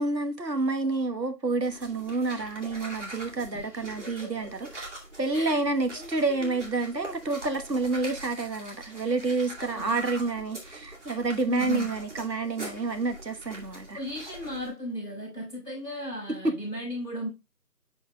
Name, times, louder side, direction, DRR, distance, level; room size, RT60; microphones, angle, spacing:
voice 1, 0.0-4.9 5.2-14.0 16.4-16.5, right 3 dB, 85° right, 1.3 m, -29 dB
sound 1, 1.6-14.7, right 1 dB, 45° right, 2.4 m, -44 dB
voice 2, 3.5-4.9 5.3-5.6 5.9-6.6 9.6-10.1 11.5-11.9 13.9-17.3, equal, ahead, 3.0 m, -37 dB
11.0 x 4.5 x 2.2 m
figure-of-eight pair, 170°, 49 cm